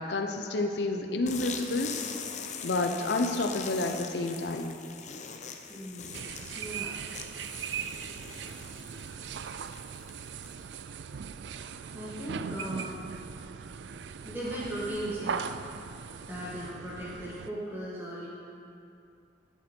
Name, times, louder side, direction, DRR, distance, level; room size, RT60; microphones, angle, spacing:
voice 1, 0.0-1.9 2.6-4.8, left 2 dB, 75° left, 4 dB, 0.7 m, -29 dB
sound 1, 1.2-10.7, left 6 dB, 40° left, 0.7 m, -42 dB
voice 2, 5.7-6.3 6.5-7.0 11.5-13.1 14.2-15.5 16.3-18.3, right 1 dB, 10° right, -8 dB, 1.7 m, -38 dB
sound 2, 6.1-17.5, right 7 dB, 80° right, 0.4 m, -39 dB
16.0 x 8.1 x 4.5 m, 2.6 s
head